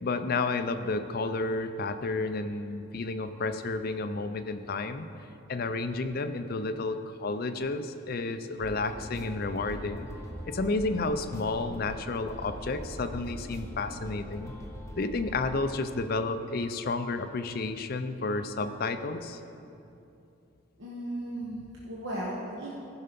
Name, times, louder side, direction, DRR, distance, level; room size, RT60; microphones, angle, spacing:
voice 1, 0.0-5.1 5.5-10.1 10.5-14.5 15.0-19.4, left 3 dB, 45° left, 9 dB, 0.5 m, -31 dB
sound 1, 8.6-15.5, equal, 15° left, 0.9 m, -42 dB
voice 2, 20.8-22.7, right 1 dB, 65° right, -6 dB, 1.3 m, -36 dB
14.5 x 5.6 x 5.2 m, 2.7 s
head